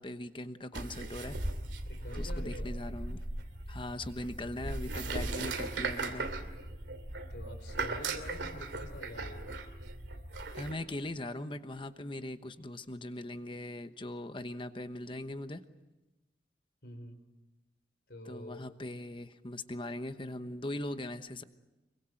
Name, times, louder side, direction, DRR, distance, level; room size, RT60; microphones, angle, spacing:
voice 1, 0.0-1.4 2.2-3.2 3.7-6.3 10.5-15.6 18.2-21.4, left 1 dB, 30° left, 10 dB, 1.1 m, -40 dB
sound 1, 0.7-10.7, right 2 dB, 85° right, 2.6 m, -38 dB
voice 2, 1.9-2.8 6.3-6.5 7.3-9.6 16.8-17.2 18.1-18.6, left 1 dB, 65° left, 8 dB, 3.8 m, -47 dB
25.5 x 23.5 x 7.8 m, 1.1 s
head